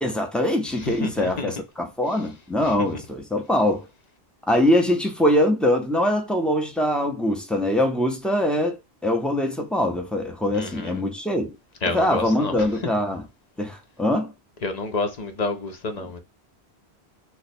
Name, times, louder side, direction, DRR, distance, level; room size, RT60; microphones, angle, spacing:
voice 1, 0.0-3.9 4.5-11.6 11.8-13.2 13.6-14.3 16.0-16.1, left 1 dB, ahead, 0.5 m, -23 dB
voice 2, 0.7-1.5 10.5-11.0 11.8-12.6 14.6-16.2, left 3 dB, 45° left, 0.7 m, -29 dB
3.0 x 2.2 x 4.1 m
omnidirectional pair, 1.1 m